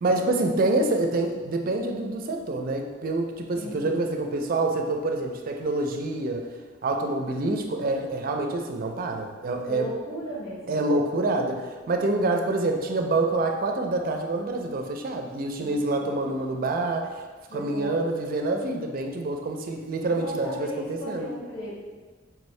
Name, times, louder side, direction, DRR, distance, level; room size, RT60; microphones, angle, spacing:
voice 1, 0.0-6.5 6.8-9.9 10.7-17.2 17.5-21.3, right 2 dB, 45° right, 4 dB, 0.4 m, -27 dB
voice 2, 3.5-4.0 9.7-10.8 15.6-16.4 17.5-18.1 20.0-21.7, equal, 70° left, -8 dB, 1.2 m, -37 dB
4.7 x 2.7 x 3.1 m, 1.4 s
head